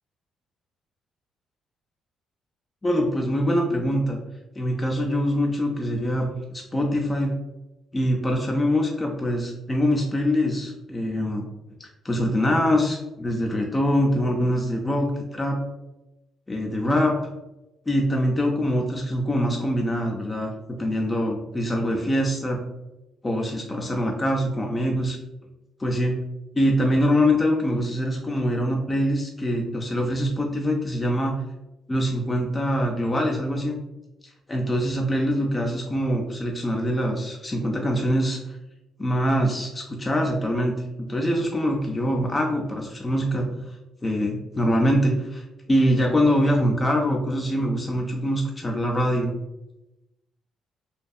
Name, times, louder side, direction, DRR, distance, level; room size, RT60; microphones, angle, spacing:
voice 1, 2.8-4.2 4.6-7.3 7.9-11.4 11.8-15.6 16.5-17.2 17.9-20.5 20.8-22.6 23.2-25.2 25.8-26.2 26.5-31.4 31.9-33.8 34.5-38.6 39.0-40.7 41.1-43.5 44.0-49.3, equal, 20° left, 0 dB, 0.4 m, -24 dB
2.6 x 2.2 x 2.3 m, 0.96 s
cardioid pair, 90°, 0 cm